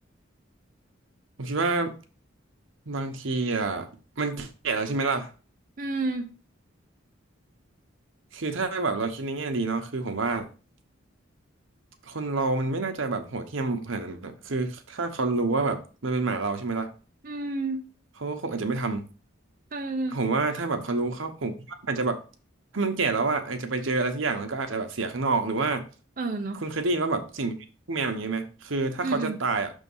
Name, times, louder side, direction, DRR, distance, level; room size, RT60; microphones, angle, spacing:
voice 1, 1.4-2.0 2.9-3.9 4.2-5.3 8.3-10.5 12.1-16.9 18.2-19.1 20.1-22.2 22.7-25.8 26.5-27.5 27.9-29.7, right 3 dB, 80° right, 6 dB, 1.0 m, -28 dB
voice 2, 5.8-6.3 17.2-17.8 19.7-20.2 26.2-26.6 29.0-29.4, right 2 dB, 45° right, 3 dB, 0.6 m, -30 dB
6.4 x 3.7 x 5.4 m, 0.35 s
head